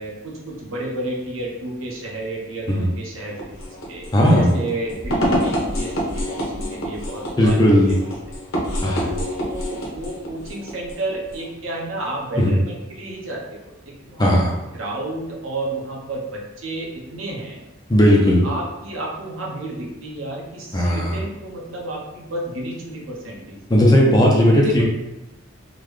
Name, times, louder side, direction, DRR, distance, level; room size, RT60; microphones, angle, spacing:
voice 1, 0.0-4.1 4.3-7.6 8.3-8.4 9.0-14.4 14.7-17.6 18.2-23.6 24.6-24.8, right 2 dB, 75° right, -2 dB, 0.8 m, -31 dB
sound 1, 3.3-11.5, equal, 75° left, 0.8 m, -27 dB
voice 2, 4.1-4.5 7.4-7.9 8.8-9.1 12.4-12.5 14.2-14.5 17.9-18.5 20.7-21.2 23.7-24.8, equal, 20° left, -2 dB, 0.5 m, -16 dB
3.8 x 2.2 x 3.1 m, 1.0 s
head